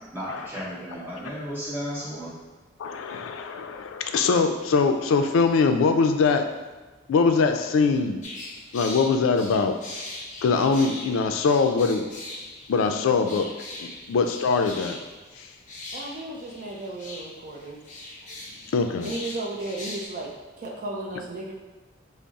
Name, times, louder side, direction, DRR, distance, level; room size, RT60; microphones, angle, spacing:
voice 1, 0.0-2.3, equal, 10° right, -8 dB, 1.1 m, -34 dB
voice 2, 2.8-6.5 7.1-8.2 8.7-9.8 10.4-12.0 12.7-13.5 13.8-15.0 15.4-15.5 18.7-19.1, left 4 dB, 80° left, 6 dB, 0.3 m, -22 dB
sound 1, 8.2-20.1, left 2 dB, 40° left, 0.7 m, -40 dB
voice 3, 15.9-17.8 19.0-21.5, right 2 dB, 45° right, -2 dB, 0.5 m, -34 dB
3.5 x 2.0 x 3.9 m, 1.3 s
head